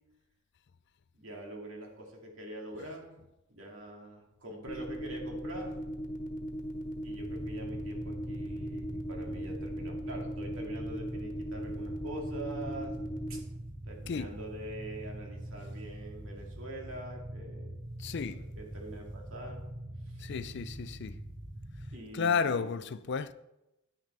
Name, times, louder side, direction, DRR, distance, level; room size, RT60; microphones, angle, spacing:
voice 1, 1.1-3.2 3.5-5.7 7.0-12.9 13.3-13.4 13.8-17.7 18.0-19.6 20.1-20.3 21.9-22.7, right 1 dB, 70° right, 2.3 m, -44 dB
sound 1, 4.7-13.4, equal, 40° left, 1.4 m, -38 dB
sound 2, 7.2-22.0, right 1 dB, 35° right, 1.1 m, -43 dB
voice 2, 18.0-18.5 20.2-21.2 22.1-23.3, left 5 dB, 55° left, 0.4 m, -32 dB
10.5 x 9.9 x 3.3 m
head